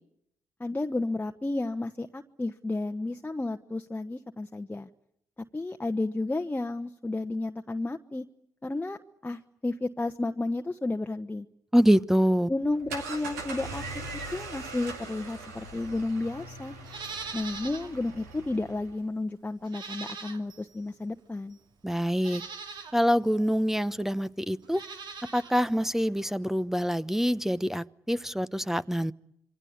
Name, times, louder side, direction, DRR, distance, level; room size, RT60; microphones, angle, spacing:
voice 1, 0.6-4.9 5.5-8.3 8.6-11.5 12.5-13.8 14.1-16.7 17.3-21.6, left 2 dB, 20° left, 5 dB, 1.3 m, -32 dB
voice 2, 11.7-12.5 21.8-22.4 22.9-24.8 25.3-29.1, equal, 5° right, 15 dB, 1.0 m, -25 dB
sound 1, 12.6-19.0, right 3 dB, 90° right, 2.1 m, -41 dB
Livestock farm animals working animals, 16.8-17.9 18.3-18.4 19.6-20.7 21.5-21.6 22.1-22.9 24.6-25.5 25.8-25.9, right 5 dB, 60° right, 2.7 m, -41 dB
27.5 x 24.0 x 8.3 m, 0.76 s
hypercardioid pair, 40°, 9 cm